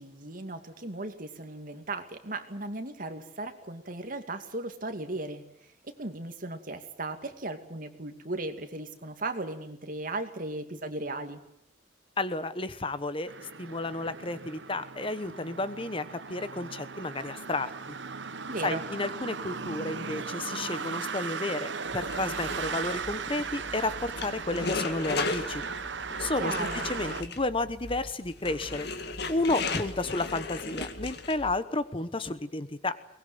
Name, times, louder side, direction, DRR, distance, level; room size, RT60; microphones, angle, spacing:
voice 1, 0.0-5.4 5.8-11.4 18.5-18.8 26.4-26.9, right 2 dB, 50° right, 7 dB, 2.5 m, -36 dB
voice 2, 12.2-13.3 13.6-18.0 18.6-25.6 26.2-28.9 29.3-33.0, left 2 dB, 30° left, 13 dB, 1.1 m, -32 dB
sound 1, 13.3-27.2, right 5 dB, 85° right, 1.2 m, -37 dB
sound 2, 21.9-31.6, left 3 dB, 65° left, 2.1 m, -36 dB
22.5 x 20.0 x 9.6 m, 0.74 s
head